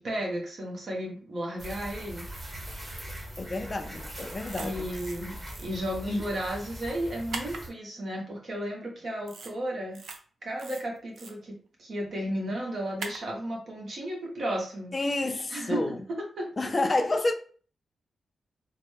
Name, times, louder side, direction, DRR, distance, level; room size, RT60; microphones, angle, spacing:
voice 1, 0.0-3.1 4.5-10.0 10.4-14.9 15.5-16.5, right 1 dB, 60° right, 1.2 m, -34 dB
sound 1, 1.6-7.7, equal, 25° right, 1.3 m, -41 dB
voice 2, 3.4-4.8 6.1-6.3 14.9-16.0 16.6-17.3, left 2 dB, 30° left, 0.4 m, -29 dB
sound 2, 4.4-5.2 5.5-5.7 7.3-7.6 9.3-9.5 9.9-10.2 10.6-11.3 13.0-13.2, right 4 dB, 75° right, 0.5 m, -39 dB
4.0 x 2.1 x 3.3 m
cardioid pair, 95°, 0 cm